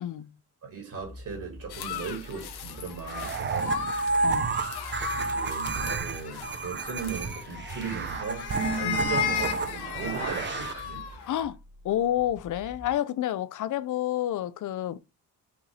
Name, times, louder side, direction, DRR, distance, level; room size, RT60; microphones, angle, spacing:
voice 1, 0.0-0.3 4.2-4.5 8.8-9.1 11.3-11.6 11.8-15.0, left 12 dB, 50° left, 0.5 m, -29 dB
voice 2, 0.6-3.8 5.1-11.3, right 5 dB, 55° right, 2.2 m, -38 dB
sound 1, 1.0-12.9, right 1 dB, 5° right, 1.1 m, -47 dB
sound 2, 1.7-11.4, left 9 dB, 75° left, 0.9 m, -36 dB
sound 3, 3.1-10.7, right 4 dB, 30° right, 0.5 m, -30 dB
6.1 x 2.6 x 3.3 m
cardioid pair, 75°, 40 cm